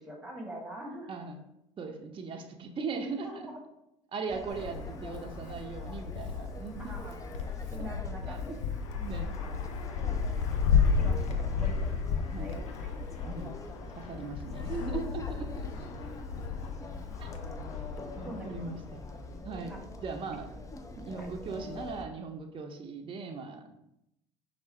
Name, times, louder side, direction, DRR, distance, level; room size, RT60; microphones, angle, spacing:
voice 1, 0.0-1.1 3.2-3.5 6.8-7.2 7.7-8.5 10.0-10.1 11.0-12.9 14.9-15.0 18.2-18.5 19.7-19.8 21.2-21.3, equal, ahead, 0 dB, 1.4 m, -44 dB
voice 2, 1.1-1.4 1.8-3.3 4.1-6.8 7.7-7.8 8.3-8.4 9.0-9.3 12.3-12.5 13.2-13.5 14.0-15.7 17.2-17.3 18.2-19.1 19.4-19.8 20.0-20.5 21.0-23.8, right 4 dB, 35° right, 3 dB, 0.6 m, -39 dB
sound 1, 4.3-22.1, left 2 dB, 20° left, 0.5 m, -45 dB
Wind, 4.5-19.4, left 6 dB, 80° left, 0.5 m, -33 dB
4.6 x 2.4 x 4.4 m, 0.83 s
hypercardioid pair, 65°, 16 cm